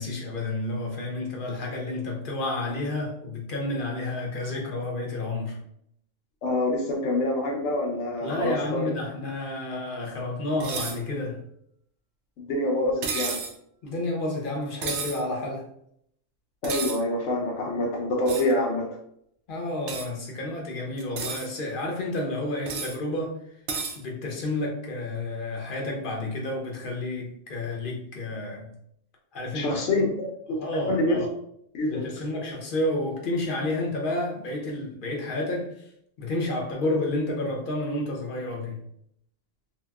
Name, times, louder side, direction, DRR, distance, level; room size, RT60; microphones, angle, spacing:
voice 1, 0.0-5.6 8.2-11.4 13.8-15.7 19.5-23.4 23.9-28.7 29.3-29.9 30.5-31.3 31.8-35.9 36.2-38.8, left 2 dB, 50° left, 0 dB, 0.8 m, -30 dB
voice 2, 6.4-8.9 12.4-13.4 16.6-19.0 29.5-30.6 30.9-31.2 31.7-32.1, left 1 dB, 80° left, 0 dB, 1.0 m, -26 dB
sound 1, 10.6-11.0 13.0-13.5 14.8-15.2 16.6-17.0 18.3-18.5 19.9-20.1 21.0-21.5 22.7-23.0 23.7-24.0, right 5 dB, 75° right, 0.9 m, -31 dB
2.8 x 2.8 x 2.3 m, 0.71 s
omnidirectional pair, 1.2 m